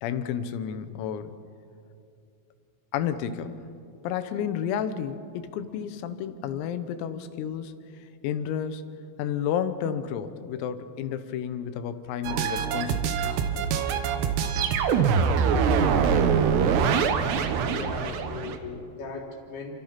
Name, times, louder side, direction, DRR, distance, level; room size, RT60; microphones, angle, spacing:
voice 1, 0.0-1.4 2.9-3.5 4.0-7.7 8.0-8.8 9.2-13.3, left 8 dB, 90° left, 10 dB, 3.9 m, -31 dB
sound 1, 12.3-18.6, right 6 dB, 70° right, 2.9 m, -24 dB
voice 2, 17.2-19.8, left 4 dB, 55° left, 0 dB, 4.8 m, -38 dB
29.0 x 25.0 x 5.9 m, 2.5 s
omnidirectional pair, 5.9 m